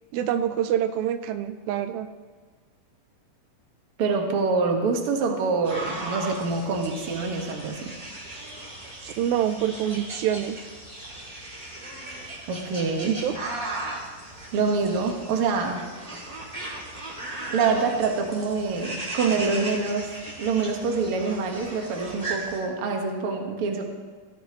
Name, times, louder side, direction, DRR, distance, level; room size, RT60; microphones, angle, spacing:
voice 1, 0.1-2.1 9.0-10.6 13.0-13.3, right 10 dB, 85° right, 10 dB, 2.4 m, -26 dB
voice 2, 4.0-8.0 12.5-13.2 14.5-15.9 17.5-23.9, right 4 dB, 50° right, 2 dB, 1.8 m, -26 dB
sound 1, 5.6-22.6, right 2 dB, 15° right, 2.5 m, -37 dB
18.0 x 14.0 x 3.1 m, 1.4 s
omnidirectional pair, 4.2 m